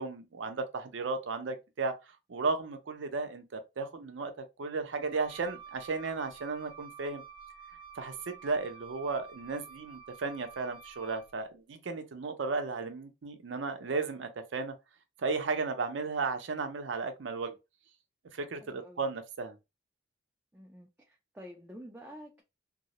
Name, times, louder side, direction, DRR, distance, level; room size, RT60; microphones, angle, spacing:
voice 1, 0.0-1.9 2.3-7.2 8.0-14.7 15.2-17.6 18.3-19.6, right 4 dB, 80° right, 0.5 m, -34 dB
Wind instrument woodwind instrument, 5.0-11.3, right 7 dB, 25° left, 0.7 m, -51 dB
voice 2, 18.6-19.1 20.5-22.4, equal, 10° right, 0.3 m, -49 dB
2.3 x 2.0 x 2.8 m
head